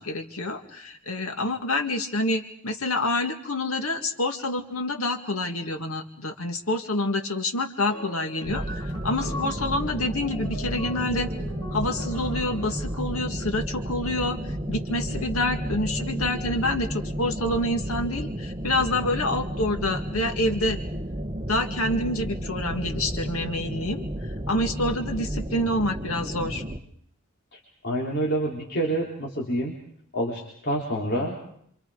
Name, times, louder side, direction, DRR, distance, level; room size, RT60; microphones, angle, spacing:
voice 1, 0.0-11.3 11.7-14.4 14.7-20.8 21.5-24.0 24.5-26.6, left 1 dB, 85° left, 5 dB, 2.1 m, -27 dB
sound 1, 7.9-13.1, left 2 dB, 20° left, 4.7 m, -41 dB
sound 2, 8.4-26.8, equal, 25° right, 1.2 m, -32 dB
voice 2, 27.8-29.7 30.1-31.4, right 1 dB, 50° left, -3 dB, 3.7 m, -27 dB
27.5 x 26.0 x 5.0 m, 0.67 s
head